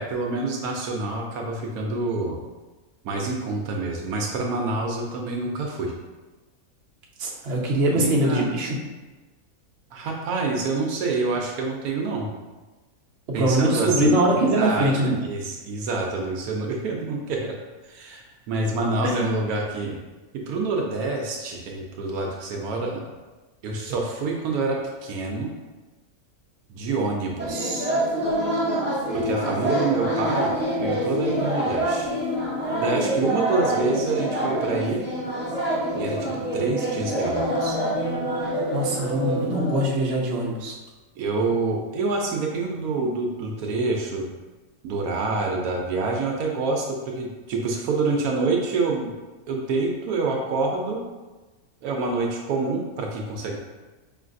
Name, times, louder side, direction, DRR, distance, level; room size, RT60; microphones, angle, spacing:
voice 1, 0.0-2.4 3.0-5.9 7.9-8.5 9.9-12.3 13.3-14.9 15.2-17.6 17.8-20.0 20.3-23.0 23.6-25.5 26.7-27.9 29.1-30.5 30.8-32.1 32.8-35.0 36.0-37.8 41.2-44.3 44.8-49.1 49.5-51.0 51.8-53.6, right 3 dB, 75° right, 0 dB, 1.1 m, -27 dB
voice 2, 7.2-8.8 13.4-15.2 19.0-19.3 38.7-40.8, right 1 dB, 50° right, -4 dB, 0.9 m, -22 dB
sound 1, 27.4-39.9, right 1 dB, 15° right, 0.4 m, -26 dB
5.1 x 3.1 x 2.5 m, 1.2 s
omnidirectional pair, 1.6 m